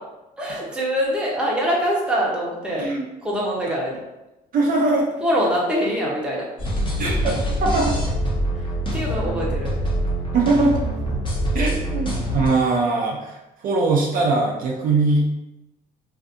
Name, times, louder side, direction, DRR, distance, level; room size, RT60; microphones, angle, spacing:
voice 1, 0.4-2.8 3.2-4.0 5.2-6.4 8.5-8.6 8.9-9.7, equal, 5° right, -5 dB, 0.7 m, -23 dB
voice 2, 4.5-5.1 7.0-8.0 10.3-10.8 11.5-15.3, right 3 dB, 55° right, -1 dB, 0.5 m, -21 dB
sound 1, 6.6-12.5, equal, 30° left, 0.7 m, -24 dB
2.5 x 2.5 x 2.5 m, 0.97 s
cardioid pair, 110°, 17 cm